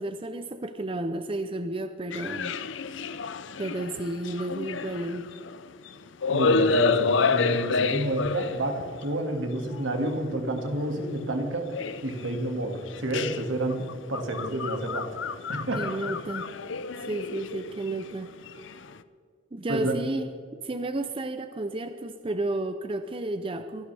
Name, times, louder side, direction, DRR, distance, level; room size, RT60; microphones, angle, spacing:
voice 1, 0.0-2.6 3.6-5.3 15.7-16.5 17.0-18.3 19.5-20.3 20.6-23.9, right 2 dB, 25° right, 9 dB, 0.5 m, -32 dB
sound 1, 2.1-5.9 6.2-9.1 9.7-9.8 10.8-11.1 11.7-12.4 12.9-18.9, left 4 dB, 70° left, 0.6 m, -29 dB
voice 2, 6.3-11.7 12.0-15.2 15.5-15.9 19.7-20.0, right 1 dB, 75° right, 4 dB, 2.1 m, -29 dB
25.5 x 12.0 x 3.4 m, 2.3 s
head